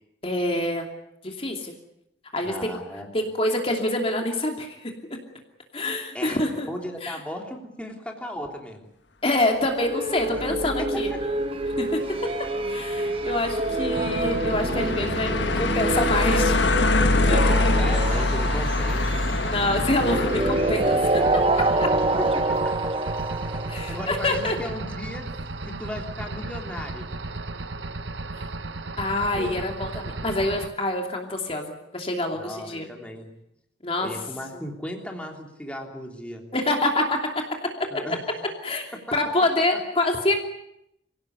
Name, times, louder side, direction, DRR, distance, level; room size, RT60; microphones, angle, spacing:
voice 1, 0.2-0.9 1.2-1.7 2.3-2.7 3.1-4.9 5.7-6.7 7.0-7.2 9.2-11.1 11.8-12.0 12.6-16.6 17.3-17.7 19.4-21.2 21.7-21.9 23.7-24.6 28.3-28.5 29.0-32.9 33.8-34.1 36.5-37.3 37.8-38.2 38.6-40.3, left 1 dB, 30° left, 2 dB, 2.8 m, -26 dB
voice 2, 2.4-3.1 6.1-8.9 10.3-11.0 17.8-19.2 22.1-22.7 23.9-27.1 29.3-29.6 32.3-33.3 34.0-36.4 37.9-38.2, equal, 5° left, 1 dB, 3.2 m, -36 dB
sound 1, 9.8-24.3, right 2 dB, 30° right, 1.2 m, -27 dB
sound 2, 10.2-22.4, left 2 dB, 80° left, 1.6 m, -26 dB
sound 3, 13.9-30.7, right 2 dB, 90° right, 1.3 m, -35 dB
26.0 x 17.0 x 9.6 m, 0.81 s
head